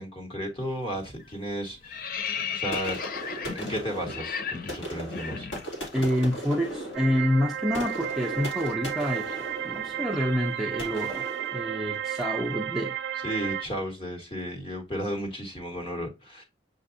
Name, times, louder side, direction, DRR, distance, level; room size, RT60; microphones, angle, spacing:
voice 1, 0.0-2.1 2.5-3.0 3.4-5.5 13.2-16.4, equal, 30° left, 1.4 m, -34 dB
sound 1, 0.6-0.9 1.2-6.1 6.4-6.6 6.9-11.0, left 6 dB, 50° left, 0.5 m, -37 dB
sound 2, 2.7-12.4, right 1 dB, 80° left, 1.7 m, -38 dB
voice 2, 5.9-11.3 11.5-13.0, equal, ahead, 0.5 m, -28 dB
sound 3, 6.9-13.7, right 10 dB, 70° right, 0.3 m, -33 dB
6.9 x 2.5 x 2.5 m
head